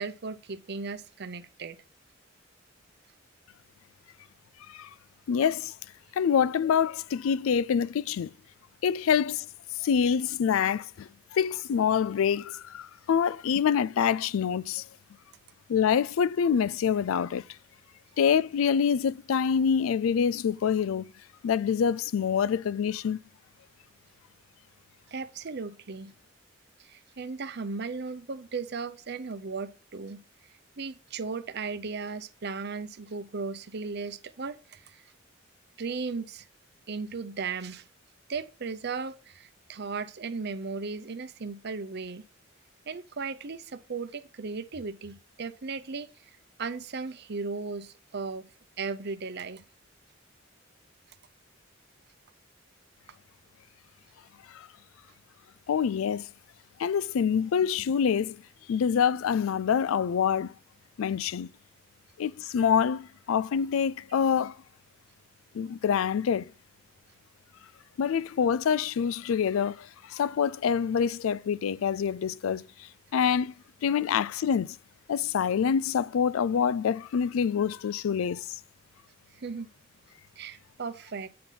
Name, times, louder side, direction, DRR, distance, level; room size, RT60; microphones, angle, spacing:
voice 1, 0.0-1.8 25.1-26.1 26.8-30.2 30.8-35.0 35.8-36.5 36.9-37.9 38.3-42.2 42.9-48.5 48.8-49.6 79.3-79.7 80.4-81.3, right 4 dB, 55° right, 0.7 m, -36 dB
voice 2, 5.3-5.7 6.1-8.3 8.8-9.5 9.8-14.8 15.7-17.4 18.2-21.1 21.4-23.2 54.5-54.7 55.7-56.3 56.8-58.4 58.7-60.5 61.0-61.5 62.2-64.6 65.5-66.5 68.0-72.6 73.1-73.5 73.8-74.8 75.1-78.6, left 7 dB, 85° left, 0.3 m, -26 dB
8.5 x 3.9 x 5.7 m
head